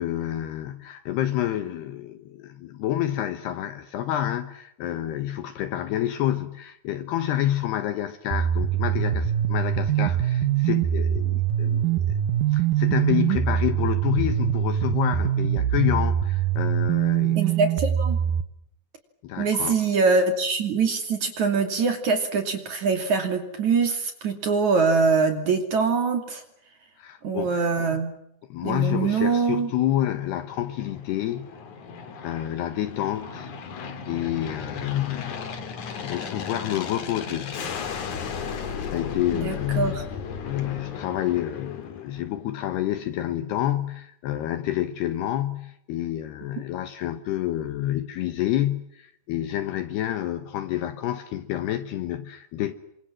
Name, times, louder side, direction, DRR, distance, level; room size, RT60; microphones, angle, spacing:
voice 1, 0.0-12.0 12.5-17.4 19.2-19.8 27.0-27.9 28.5-31.5 32.2-33.5 34.1-35.4 36.0-37.6 38.8-40.0 40.4-52.7, left 12 dB, 70° left, 2.8 m, -28 dB
sound 1, 8.3-18.4, right 10 dB, 90° right, 1.9 m, -23 dB
voice 2, 17.3-18.2 19.4-26.4 27.2-28.1 28.6-29.7 39.4-40.0, right 4 dB, 45° right, 3.4 m, -23 dB
Aircraft, 29.7-42.5, left 6 dB, 50° left, 3.0 m, -36 dB
29.0 x 25.5 x 7.5 m
omnidirectional pair, 5.7 m